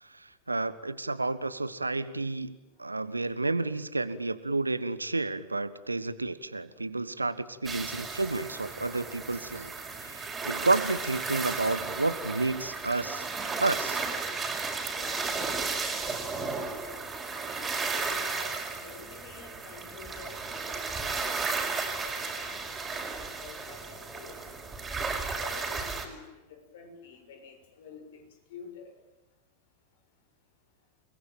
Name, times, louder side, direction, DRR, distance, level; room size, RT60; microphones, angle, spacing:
voice 1, 0.0-9.7 10.0-13.3 13.6-14.0, right 3 dB, 80° right, 15 dB, 1.3 m, -31 dB
sound 1, 7.7-26.1, right 4 dB, 15° right, 5.3 m, -34 dB
voice 2, 14.9-15.5 16.1-17.1 17.9-21.4 22.0-23.1 23.4-24.4 25.0-26.2 26.5-28.2 28.5-28.9, left 5 dB, 55° left, 5 dB, 6.9 m, -48 dB
29.5 x 20.5 x 9.1 m, 1.1 s
figure-of-eight pair, 90°, 0 cm